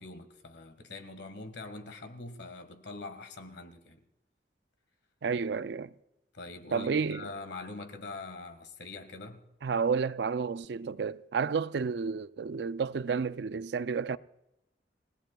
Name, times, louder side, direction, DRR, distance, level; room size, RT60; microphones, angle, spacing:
voice 1, 0.0-4.0 6.3-9.4, left 3 dB, 70° left, 1.8 m, -44 dB
voice 2, 5.2-5.9 6.7-7.3 9.6-14.2, right 5 dB, 65° right, 0.4 m, -31 dB
29.0 x 18.0 x 2.3 m
head